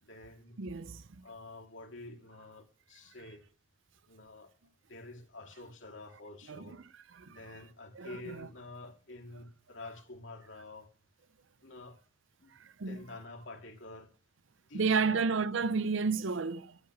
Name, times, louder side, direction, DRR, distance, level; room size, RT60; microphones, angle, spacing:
voice 1, 0.0-0.6 1.2-3.4 4.1-4.5 4.9-6.8 7.3-10.9 11.6-12.0 12.4-12.5 12.9-14.1 14.7-15.2, left 2 dB, 70° left, 2.6 m, -48 dB
voice 2, 0.6-1.0 6.5-6.8 7.2-7.4 8.0-8.1 8.4-8.5 12.6-13.0 14.7-16.8, right 4 dB, 75° right, 0.6 m, -31 dB
12.5 x 8.6 x 7.5 m
head